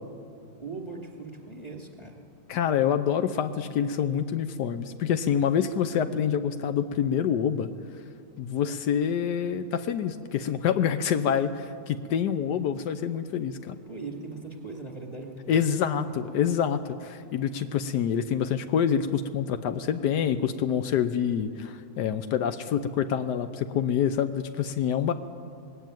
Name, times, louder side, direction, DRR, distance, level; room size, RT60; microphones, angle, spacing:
voice 1, 0.6-2.2 13.9-15.6, right 3 dB, 15° left, 2 dB, 2.5 m, -39 dB
voice 2, 2.5-7.7 8.4-13.8 15.5-25.1, left 8 dB, 80° left, 10 dB, 1.3 m, -26 dB
19.5 x 17.0 x 9.1 m, 2.3 s
omnidirectional pair, 1.8 m